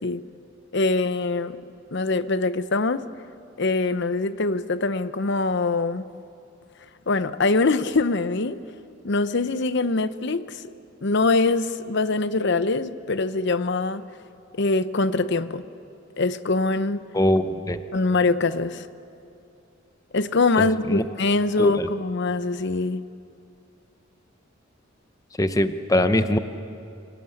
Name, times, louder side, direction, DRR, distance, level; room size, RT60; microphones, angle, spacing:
voice 1, 0.7-1.6 1.9-3.0 3.6-6.0 7.1-8.6 9.0-10.7 11.0-14.1 14.5-15.7 16.2-17.1 17.9-18.9 20.1-23.0, left 3 dB, 60° left, 13 dB, 0.8 m, -23 dB
voice 2, 17.1-17.8 20.9-21.0 21.6-21.9 25.4-26.4, left 1 dB, 15° left, 10 dB, 0.9 m, -21 dB
27.0 x 18.0 x 8.5 m, 2.5 s
head